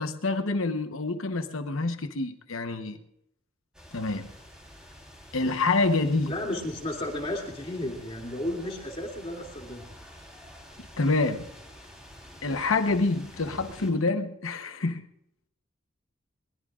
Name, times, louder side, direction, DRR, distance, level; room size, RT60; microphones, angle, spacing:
voice 1, 0.0-3.0 3.9-4.3 5.3-6.3 11.0-11.5 12.4-15.1, left 3 dB, 80° left, 8 dB, 1.0 m, -27 dB
sound 1, 3.7-13.9, equal, 5° right, 3.6 m, -48 dB
voice 2, 6.3-9.8, left 1 dB, 30° left, -1 dB, 2.7 m, -33 dB
22.5 x 21.5 x 2.5 m, 0.77 s
head